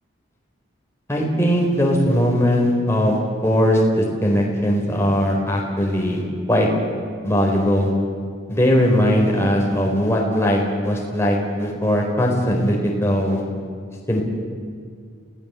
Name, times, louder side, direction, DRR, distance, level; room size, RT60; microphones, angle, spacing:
voice 1, 1.1-6.2 6.5-6.7 7.2-7.9 8.5-13.4 14.1-14.2, equal, 15° left, -1 dB, 4.3 m, -19 dB
29.0 x 17.5 x 8.3 m, 2.2 s
head